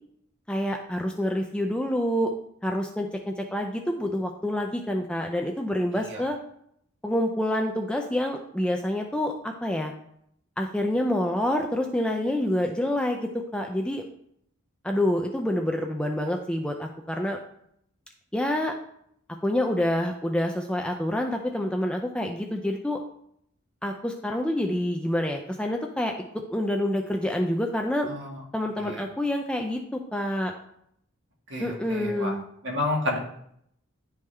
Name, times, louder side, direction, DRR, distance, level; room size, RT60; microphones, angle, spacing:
voice 1, 0.5-2.3 2.6-6.4 7.0-9.9 10.6-14.0 14.8-17.4 18.3-18.7 19.4-23.0 23.8-26.1 26.5-28.1 28.5-30.5 31.6-32.4, left 1 dB, 5° left, 2 dB, 0.4 m, -27 dB
voice 2, 28.1-28.4 28.8-29.0 31.5-32.3 32.6-33.2, left 1 dB, 55° right, -1 dB, 1.5 m, -30 dB
10.5 x 3.5 x 3.2 m, 0.72 s
head